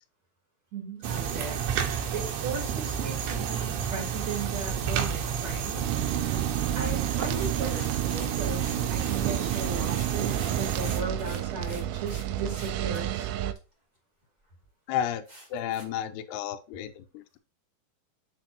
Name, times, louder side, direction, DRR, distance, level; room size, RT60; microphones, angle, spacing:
voice 1, 0.7-5.8 6.7-13.3, right 4 dB, 45° right, -3 dB, 3.1 m, -37 dB
sound 1, 1.0-11.0, right 8 dB, 70° right, 3.0 m, -31 dB
sound 2, 5.8-13.5, right 13 dB, 85° right, 2.9 m, -31 dB
sound 3, 7.2-12.2 12.5-13.0 13.5-13.6 14.2-14.3 14.6-14.7 15.2-15.8, right 1 dB, 20° right, 1.1 m, -47 dB
voice 2, 14.9-15.2 15.5-17.4, left 10 dB, 75° left, 6 dB, 2.7 m, -32 dB
7.5 x 7.4 x 2.9 m, 0.31 s
omnidirectional pair, 5.2 m